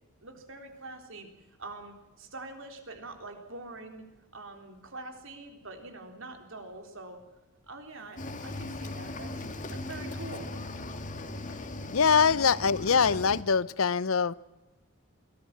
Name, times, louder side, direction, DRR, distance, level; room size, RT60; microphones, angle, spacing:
voice 1, 0.2-1.3 1.6-4.1 4.3-7.2 7.7-9.4 9.7-10.5, right 2 dB, 65° right, 5 dB, 3.8 m, -44 dB
Cricket / Waves surf, 8.2-13.4, left 2 dB, 35° left, 2.1 m, -38 dB
voice 2, 11.9-14.3, left 6 dB, 70° left, 19 dB, 0.6 m, -23 dB
23.5 x 17.5 x 7.4 m, 1.1 s
head